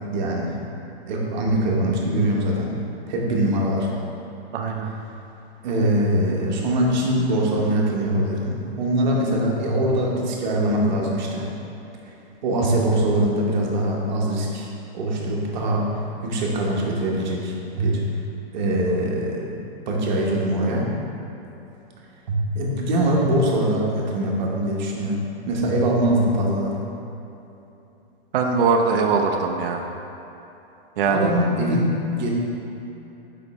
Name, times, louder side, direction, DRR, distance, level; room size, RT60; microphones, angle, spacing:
voice 1, 0.1-0.5 1.1-2.7 3.1-3.9 5.6-11.4 12.4-15.9 16.2-18.0 18.5-19.5 19.9-20.9 22.3-25.2 25.5-26.8 31.1-32.3, right 1 dB, 45° right, -2 dB, 1.0 m, -22 dB
voice 2, 4.5-4.9 28.3-29.9 31.0-31.3, right 5 dB, 60° right, 2 dB, 0.5 m, -21 dB
5.2 x 5.1 x 4.1 m, 2.9 s
hypercardioid pair, 170°, 32 cm